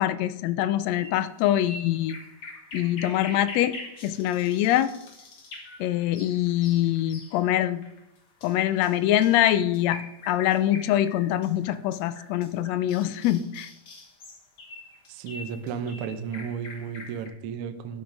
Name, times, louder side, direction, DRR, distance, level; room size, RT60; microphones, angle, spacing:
voice 1, 0.0-2.2 2.7-3.8 4.0-4.9 5.8-7.9 8.4-13.7, left 12 dB, 80° left, 13 dB, 1.6 m, -24 dB
sound 1, 0.9-17.3, left 2 dB, 45° left, 1.6 m, -44 dB
voice 2, 15.1-18.0, right 7 dB, 75° right, 9 dB, 1.3 m, -33 dB
10.5 x 6.0 x 5.2 m, 0.87 s
omnidirectional pair, 3.4 m